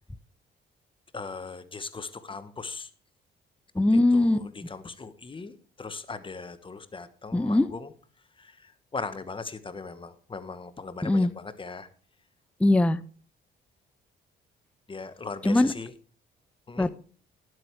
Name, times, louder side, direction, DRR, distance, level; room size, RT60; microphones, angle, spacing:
voice 1, 1.1-2.9 4.1-7.9 8.4-11.9 14.9-15.9 16.7-16.9, left 4 dB, 25° left, 12 dB, 1.1 m, -39 dB
voice 2, 3.8-4.4 7.3-7.7 11.0-11.3 12.6-13.0 15.4-15.7 16.8-16.9, left 2 dB, 5° left, 14 dB, 0.4 m, -21 dB
11.0 x 7.8 x 4.6 m, 0.41 s
cardioid pair, 90°, 20 cm